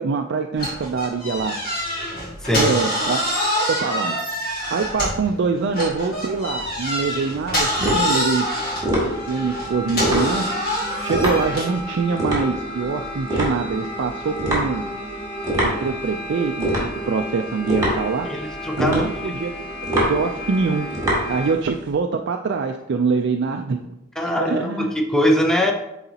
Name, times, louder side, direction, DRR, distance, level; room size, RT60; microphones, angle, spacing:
voice 1, 0.0-1.6 2.5-3.2 3.6-4.2 4.7-8.5 9.3-10.5 11.0-14.9 15.6-18.3 18.8-19.5 20.1-20.9 21.3-23.8 24.4-24.9, right 4 dB, 60° right, 4 dB, 0.4 m, -24 dB
sound 1, 0.6-5.3 5.7-11.8, equal, 50° left, 2.4 m, -26 dB
voice 2, 2.4-2.7 18.3-19.0 24.2-25.7, equal, 5° left, 1 dB, 0.7 m, -21 dB
sound 2, 6.3-21.9, right 1 dB, 20° right, 2.5 m, -26 dB
sound 3, 6.8-21.5, equal, 25° left, 1.0 m, -33 dB
9.7 x 4.0 x 2.8 m, 0.88 s
head